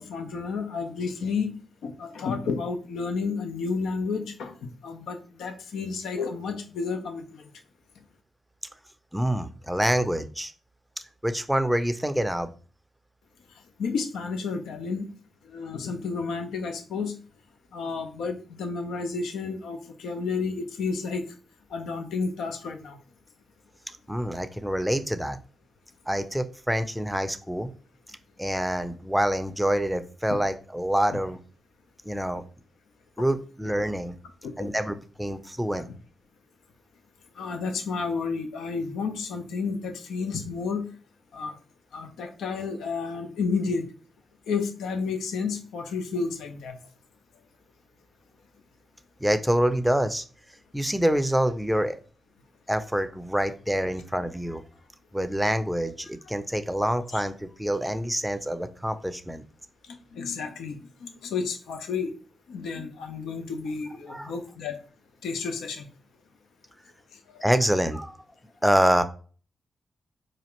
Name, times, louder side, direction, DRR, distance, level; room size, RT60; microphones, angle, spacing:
voice 1, 0.0-1.6 1.8-7.5 13.8-15.1 15.4-17.1 17.7-21.2 21.7-23.0 30.3-30.4 31.1-31.2 33.2-33.3 34.4-34.7 35.8-36.0 37.4-40.9 41.3-41.5 41.9-43.9 44.5-46.8 57.1-57.2 60.1-62.1 62.5-64.8 65.2-65.9 67.1-67.4, left 4 dB, 85° left, 6 dB, 0.5 m, -31 dB
voice 2, 9.1-10.5 11.2-12.5 24.1-25.4 26.1-27.7 28.4-31.4 32.1-32.4 33.2-34.1 34.6-35.8 49.2-50.2 50.7-52.0 52.7-54.6 55.1-59.4 64.1-64.3 67.4-68.2 68.6-69.0, equal, 5° right, 9 dB, 0.5 m, -26 dB
4.2 x 2.4 x 2.9 m, 0.39 s
cardioid pair, 60°, 0 cm